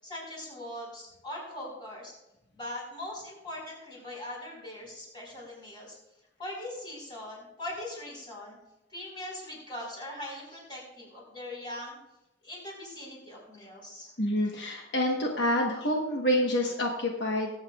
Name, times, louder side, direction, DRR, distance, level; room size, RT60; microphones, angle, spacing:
voice 1, 0.0-2.1 2.5-6.0 6.4-8.6 8.9-12.0 12.4-14.1, left 1 dB, 25° left, -4 dB, 4.7 m, -41 dB
voice 2, 14.2-17.5, equal, 70° left, 0 dB, 1.2 m, -27 dB
22.0 x 8.1 x 2.4 m, 0.92 s
head